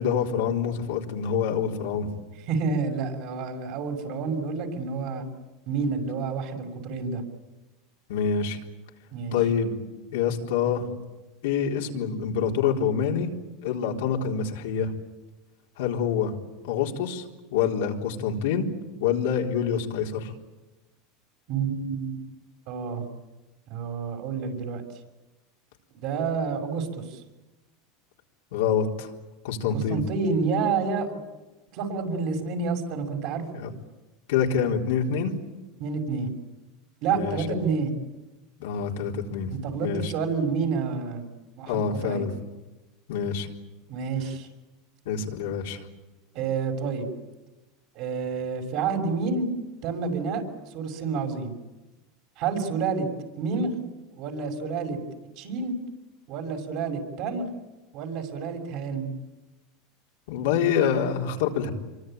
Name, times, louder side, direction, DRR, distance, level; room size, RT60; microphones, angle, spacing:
voice 1, 0.0-2.1 8.1-8.6 9.3-9.7 10.1-10.9 11.4-13.3 13.6-14.9 15.8-16.3 16.6-17.2 17.5-18.7 19.0-20.3 28.5-29.1 29.4-30.0 33.5-33.7 34.3-35.3 37.1-37.6 38.6-39.5 39.8-40.1 41.7-42.3 43.1-43.5 45.1-45.8 60.3-61.7, left 7 dB, 80° left, 1 dB, 4.0 m, -26 dB
voice 2, 2.5-5.3 5.7-7.2 9.1-9.4 21.5-22.2 22.7-23.0 23.7-24.8 25.9-27.2 29.7-31.2 31.7-33.6 35.8-36.3 37.0-37.9 39.5-41.3 41.5-42.3 43.9-44.5 46.3-47.1 47.9-49.5 49.8-50.4 50.7-51.5 52.4-53.1 53.4-53.8 54.1-55.0 55.4-55.7 56.3-57.5 57.9-59.1, right 5 dB, 55° right, 4 dB, 6.3 m, -29 dB
26.5 x 23.5 x 9.2 m, 1.1 s
supercardioid pair, 120°, 0 cm